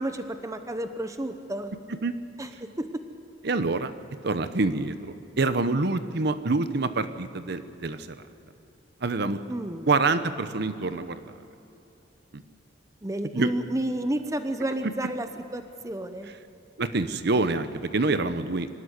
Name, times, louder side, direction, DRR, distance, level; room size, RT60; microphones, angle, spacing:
voice 1, 0.0-1.7 2.4-2.5 2.8-2.9 9.5-9.9 13.0-16.3, right 1 dB, 15° right, 8 dB, 0.9 m, -31 dB
voice 2, 3.4-3.9 4.2-8.0 9.0-9.4 9.9-11.2 13.3-13.5 16.8-18.7, right 3 dB, 60° right, 11 dB, 0.9 m, -26 dB
25.5 x 12.5 x 9.7 m, 2.9 s
head